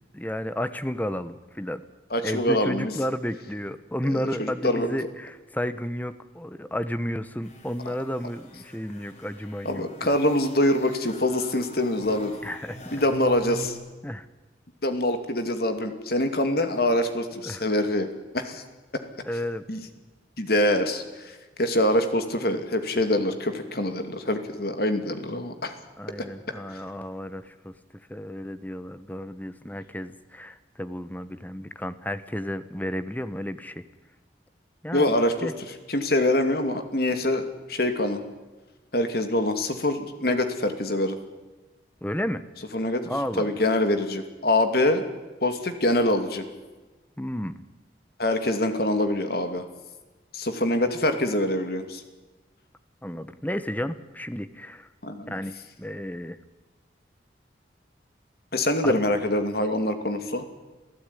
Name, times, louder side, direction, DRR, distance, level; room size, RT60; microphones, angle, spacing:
voice 1, 0.1-1.8 2.2-10.1 12.4-12.8 14.0-14.3 17.4-17.6 19.3-19.6 25.4-25.6 26.0-27.7 28.1-33.8 34.8-35.1 35.4-35.5 42.0-42.4 43.1-43.6 47.2-47.6 53.0-54.9 55.3-56.4 58.8-59.0, equal, 10° left, 13 dB, 1.0 m, -32 dB
voice 2, 2.1-2.9 4.1-4.9 7.9-8.0 9.6-12.3 12.9-13.8 14.8-18.6 19.7-19.8 20.4-25.7 26.7-26.8 34.9-35.5 35.9-38.2 38.9-41.2 42.7-43.0 43.4-45.0 45.4-46.4 48.2-49.6 50.3-52.0 55.0-55.3 58.5-60.4, left 1 dB, 55° left, 7 dB, 2.7 m, -25 dB
sound 1, 7.4-13.7, left 1 dB, 40° left, 4.7 m, -44 dB
27.5 x 15.5 x 9.9 m, 1.2 s
head